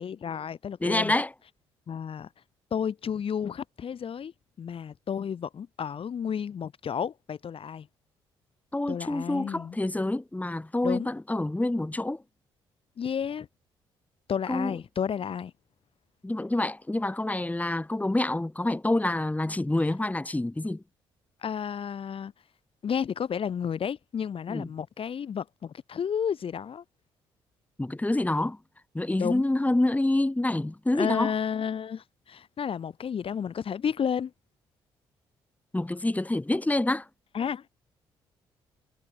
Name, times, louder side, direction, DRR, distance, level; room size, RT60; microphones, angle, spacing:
voice 1, 0.0-1.1 1.9-2.3 2.7-4.3 4.6-7.9 8.9-9.8 10.8-11.1 13.0-13.5 14.3-15.5 21.4-22.3 22.8-26.8 29.2-29.4 30.9-34.3 37.3-37.7, left 7 dB, 55° left, 2.8 m, -31 dB
voice 2, 0.8-1.3 8.7-12.2 14.5-14.8 16.2-20.8 24.5-24.7 27.8-28.6 28.9-31.3 35.7-37.1, left 2 dB, 15° left, 2.9 m, -27 dB
hypercardioid pair, 50°, 12 cm